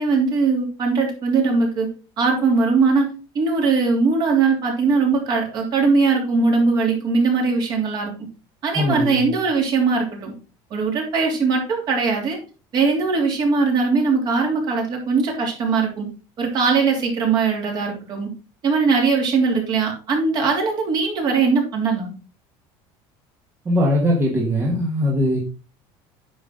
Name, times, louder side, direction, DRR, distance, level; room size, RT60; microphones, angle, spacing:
voice 1, 0.0-1.9 2.2-3.1 3.3-8.1 8.6-10.3 10.7-12.4 12.7-16.1 16.4-18.3 18.6-22.1, right 4 dB, 40° right, 1 dB, 3.1 m, -20 dB
voice 2, 8.7-9.3 23.6-25.4, left 1 dB, 20° right, -3 dB, 1.6 m, -20 dB
9.3 x 6.1 x 3.8 m, 0.34 s
cardioid pair, 160°, 11 cm